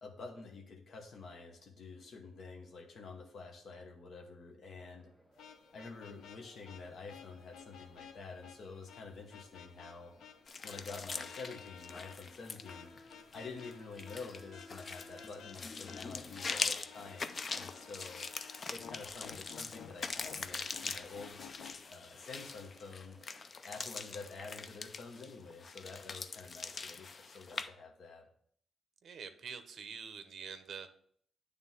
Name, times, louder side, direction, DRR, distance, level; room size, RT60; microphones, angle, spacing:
voice 1, 0.0-5.1 5.7-10.1 10.6-12.9 13.3-18.3 18.7-21.4 21.9-23.2 23.6-28.3, left 4 dB, 50° left, 1 dB, 1.0 m, -48 dB
sound 1, 4.7-24.5, left 1 dB, 5° left, 0.7 m, -63 dB
sound 2, 5.4-21.9, left 8 dB, 90° left, 0.5 m, -55 dB
sound 3, 10.5-27.7, left 4 dB, 30° left, 0.4 m, -42 dB
voice 2, 29.0-30.9, right 6 dB, 50° right, 10 dB, 0.7 m, -46 dB
9.3 x 3.4 x 5.6 m, 0.62 s
wide cardioid pair, 160°, 0 cm